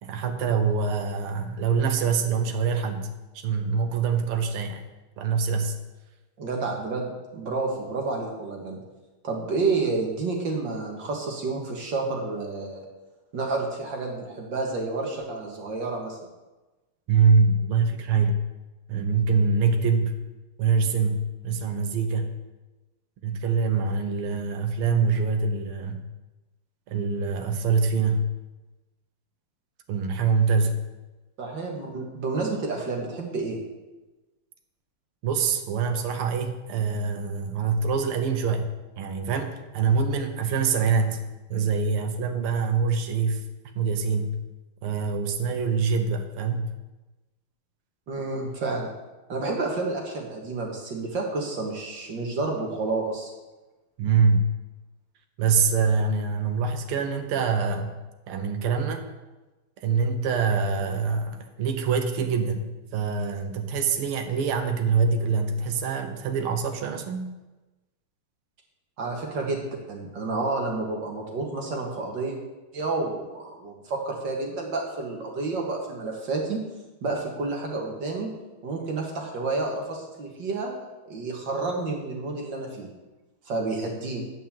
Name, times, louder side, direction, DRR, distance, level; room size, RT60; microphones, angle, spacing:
voice 1, 0.0-3.1 3.3-4.8 5.2-5.8 17.1-18.4 18.9-20.2 20.6-22.3 23.2-26.0 26.9-28.3 29.9-30.8 35.2-38.7 39.0-41.2 41.5-43.4 43.7-44.4 44.8-46.7 54.0-54.5 55.4-58.0 58.3-59.1 59.8-67.3, right 5 dB, 80° right, 6 dB, 1.8 m, -24 dB
voice 2, 6.4-8.8 9.2-12.8 13.3-16.2 31.4-33.6 48.1-48.9 49.3-53.3 69.0-69.6 69.9-72.4 72.7-76.6 77.0-78.3 78.6-80.7 81.1-82.9 83.5-84.2, right 3 dB, 55° right, 0 dB, 2.3 m, -30 dB
9.4 x 5.4 x 7.3 m, 1.1 s
omnidirectional pair, 2.4 m